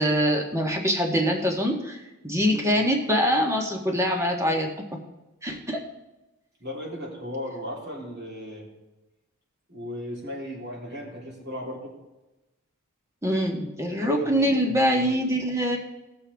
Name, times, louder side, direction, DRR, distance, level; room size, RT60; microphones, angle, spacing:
voice 1, 0.0-4.7 5.4-5.8 13.2-15.8, equal, 15° right, 1 dB, 1.5 m, -24 dB
voice 2, 2.5-2.8 6.6-8.7 9.7-11.9 13.9-15.1, left 1 dB, 50° right, -3 dB, 3.4 m, -36 dB
19.0 x 7.0 x 3.5 m, 1.0 s
head